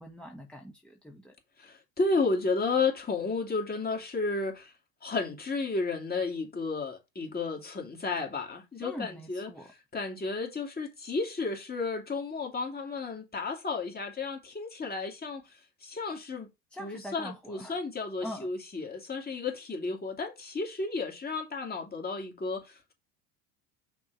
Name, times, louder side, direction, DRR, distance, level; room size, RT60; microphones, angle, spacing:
voice 1, 0.0-1.3 8.8-9.7 16.7-17.8 18.2-18.5, equal, 5° left, 1.3 m, -43 dB
voice 2, 1.6-4.7 5.0-9.5 9.9-16.5 16.8-22.9, left 3 dB, 25° left, 2.4 m, -32 dB
6.1 x 3.6 x 6.0 m
hypercardioid pair, 80°, 39 cm